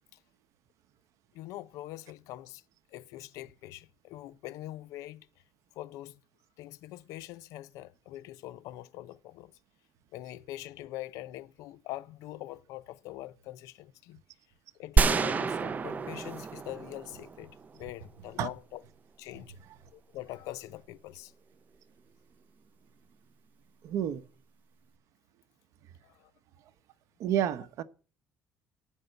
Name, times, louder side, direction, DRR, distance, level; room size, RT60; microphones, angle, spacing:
voice 1, 1.3-2.6 2.9-5.3 5.7-6.2 6.6-9.5 10.1-14.2 14.7-18.8 19.2-19.6 19.9-21.3 26.0-26.3, left 15 dB, 85° left, 0.6 m, -43 dB
sound 1, 15.0-17.9, right 5 dB, 30° right, 0.5 m, -28 dB
voice 2, 23.8-24.2 27.2-27.8, right 10 dB, 70° right, 0.9 m, -29 dB
11.5 x 5.4 x 7.9 m
cardioid pair, 110°, 6 cm